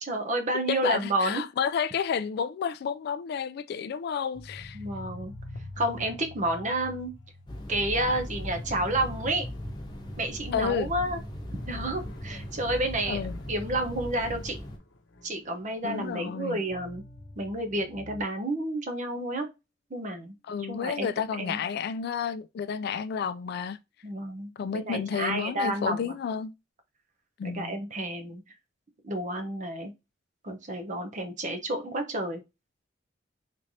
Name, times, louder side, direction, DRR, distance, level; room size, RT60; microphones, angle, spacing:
voice 1, 0.0-1.4 4.7-5.3 5.8-7.1 7.7-9.4 10.2-11.2 11.7-13.2 13.5-14.6 15.2-17.0 17.4-19.5 19.9-20.3 20.7-21.1 21.4-21.7 24.0-26.1 27.4-28.5 29.0-29.9 30.4-32.4, right 1 dB, 40° right, 0.8 m, -30 dB
voice 2, 0.7-4.8 10.5-10.9 13.1-13.4 15.8-16.6 20.5-23.8 24.6-26.5 27.4-27.8, left 7 dB, 60° left, 0.3 m, -31 dB
sound 1, 4.3-10.8 11.1-11.2 11.5-16.1 16.6-18.2, left 2 dB, 90° left, 0.7 m, -46 dB
sound 2, 7.5-14.8, left 1 dB, 25° left, 1.0 m, -38 dB
Harp, 15.9-19.6 20.1-20.6 21.2-21.3, left 3 dB, ahead, 1.0 m, -52 dB
3.7 x 3.2 x 2.6 m
head